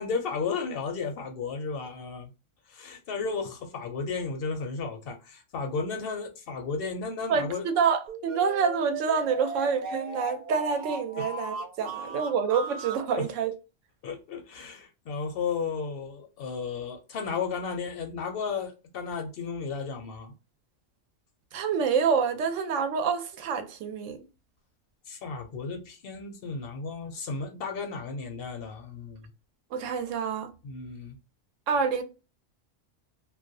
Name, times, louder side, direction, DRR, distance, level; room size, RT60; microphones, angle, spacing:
voice 1, 0.0-2.3 2.7-7.7 13.1-13.3 14.0-20.3 25.1-29.3 30.6-31.2, left 5 dB, 60° left, 0.6 m, -34 dB
voice 2, 7.3-13.5 21.5-24.2 29.7-30.5 31.7-32.0, right 6 dB, 85° right, 0.9 m, -27 dB
sound 1, 8.1-13.1, right 3 dB, 55° right, 0.8 m, -37 dB
2.4 x 2.0 x 2.5 m
omnidirectional pair, 1.3 m